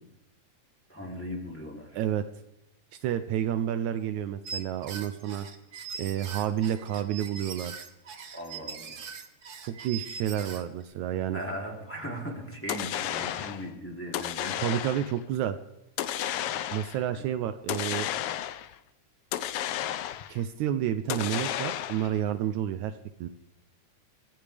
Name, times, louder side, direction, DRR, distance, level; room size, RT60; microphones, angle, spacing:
voice 1, 0.9-2.0 8.3-9.0 11.3-14.6 17.1-17.3, equal, 5° left, -1 dB, 2.9 m, -38 dB
voice 2, 1.9-2.3 2.9-5.5 6.0-7.7 9.6-11.4 14.6-15.6 16.7-18.1 20.3-23.3, right 10 dB, 80° right, 10 dB, 1.9 m, -30 dB
sound 1, 4.4-10.8, right 6 dB, 55° right, 1.1 m, -41 dB
sound 2, 12.7-13.7 14.1-15.2 16.0-17.0 17.7-18.7 19.3-20.4 21.1-22.2, left 11 dB, 85° left, 1.2 m, -32 dB
23.0 x 15.0 x 3.5 m, 0.93 s
omnidirectional pair, 3.5 m